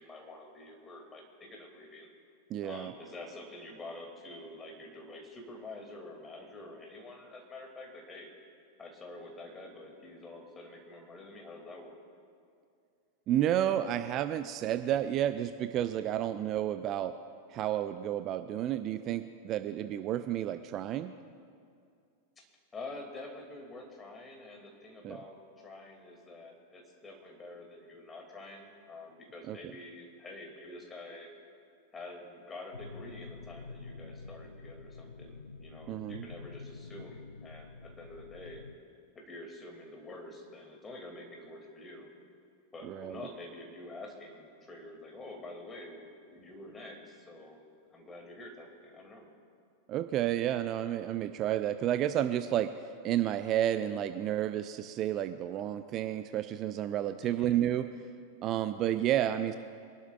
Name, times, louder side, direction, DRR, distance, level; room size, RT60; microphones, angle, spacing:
voice 1, 0.0-2.1 2.6-8.3 8.8-12.0 22.4-22.5 22.7-31.3 31.9-38.6 39.1-42.1 42.7-47.6 47.9-49.3 57.2-57.6, left 2 dB, 15° left, 1 dB, 2.5 m, -47 dB
voice 2, 2.5-2.9 13.3-17.2 17.5-21.1 25.0-25.2 29.5-29.7 35.9-36.3 42.8-43.2 49.9-52.8 53.0-57.9 58.4-59.6, right 11 dB, 35° right, 10 dB, 0.4 m, -31 dB
sound 1, 32.7-38.8, left 3 dB, 80° left, 0.4 m, -47 dB
24.5 x 12.0 x 2.4 m, 2.4 s
figure-of-eight pair, 90°, 0 cm